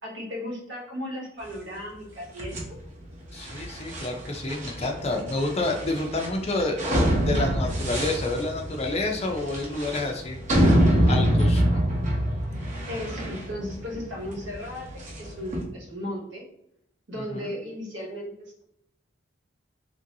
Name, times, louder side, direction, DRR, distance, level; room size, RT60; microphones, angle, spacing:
voice 1, 0.0-2.6 12.8-14.9 15.2-16.4 17.1-18.6, left 1 dB, 75° right, -2 dB, 1.1 m, -35 dB
sound 1, 2.4-15.6, equal, 40° right, 0.8 m, -26 dB
voice 2, 3.3-6.9 7.2-10.4 11.1-11.8 17.3-17.5, left 2 dB, 35° left, 3 dB, 0.5 m, -29 dB
3.1 x 2.6 x 2.7 m, 0.74 s
head